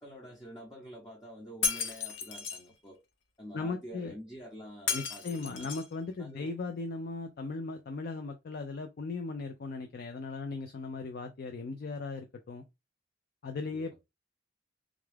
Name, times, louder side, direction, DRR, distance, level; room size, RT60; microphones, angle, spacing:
voice 1, 0.0-3.0 3.4-5.7 6.2-6.5 13.7-14.0, equal, 20° left, 0.8 m, -48 dB
Shatter, 1.6-2.6 4.9-5.9, left 6 dB, 80° left, 0.7 m, -33 dB
voice 2, 3.5-4.1 4.9-12.6 13.4-14.0, left 3 dB, 55° left, 0.4 m, -38 dB
3.6 x 2.3 x 3.3 m
head